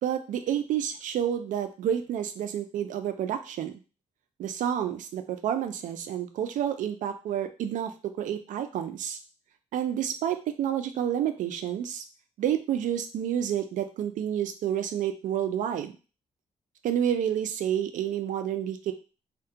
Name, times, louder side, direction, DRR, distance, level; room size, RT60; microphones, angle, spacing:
voice 1, 0.0-3.7 4.4-7.9 8.2-9.2 9.7-12.0 12.4-15.9 16.8-18.9, right 9 dB, 85° right, 8 dB, 0.4 m, -29 dB
2.3 x 2.1 x 2.6 m, 0.34 s
cardioid pair, 110°, 13 cm